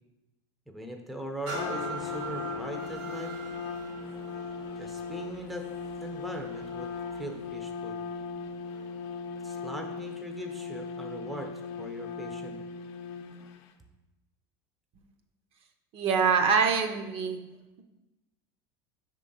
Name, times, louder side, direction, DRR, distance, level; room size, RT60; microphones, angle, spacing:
voice 1, 0.7-3.3 4.8-5.7 6.0-8.0 9.4-11.5 11.8-12.6, right 1 dB, ahead, 3 dB, 0.5 m, -40 dB
Trumpet, 1.5-13.6, left 5 dB, 65° left, 0.6 m, -38 dB
sound 1, 1.5-9.1 9.6-9.7, right 4 dB, 85° right, 1.9 m, -43 dB
voice 2, 15.9-17.4, right 5 dB, 40° right, 6 dB, 0.6 m, -24 dB
5.0 x 3.7 x 5.3 m, 1.0 s
supercardioid pair, 125°, 14 cm